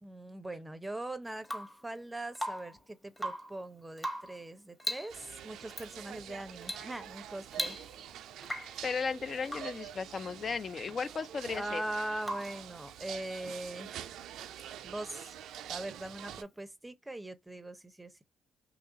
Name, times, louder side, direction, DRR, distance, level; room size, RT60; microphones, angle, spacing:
voice 1, 0.0-7.8 11.5-14.1 14.8-15.3 15.7-18.2, right 1 dB, 10° right, 0.6 m, -41 dB
Rain / Water tap faucet / Drip, 1.4-1.8 2.3-2.8 3.1-3.6 4.0-4.4 4.8-5.2 5.7-5.9 6.6-6.9 7.2-7.3 7.5-8.1 8.4-8.8 9.5-9.8 12.2-12.7 14.6-14.7, equal, 20° left, 1.1 m, -38 dB
sound 1, 5.1-16.4, right 10 dB, 80° right, 0.3 m, -46 dB
voice 2, 8.8-11.8, left 5 dB, 45° left, 0.4 m, -35 dB
3.0 x 2.4 x 3.7 m
cardioid pair, 70°, 0 cm